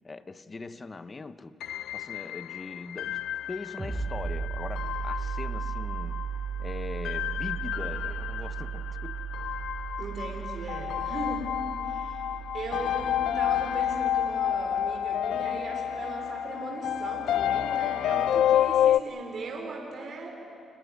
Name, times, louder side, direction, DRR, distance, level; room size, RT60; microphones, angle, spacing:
voice 1, 0.0-1.6 1.9-6.3 6.6-9.2, left 3 dB, 30° left, 1.0 m, -41 dB
sound 1, 1.6-19.0, left 11 dB, 75° left, 0.5 m, -30 dB
sound 2, 3.8-15.1, right 7 dB, 20° right, 4.5 m, -36 dB
voice 2, 10.0-11.5 11.8-12.2 12.5-20.3, right 2 dB, 50° right, 3.9 m, -38 dB
29.0 x 16.5 x 9.7 m
cardioid pair, 90°, 0 cm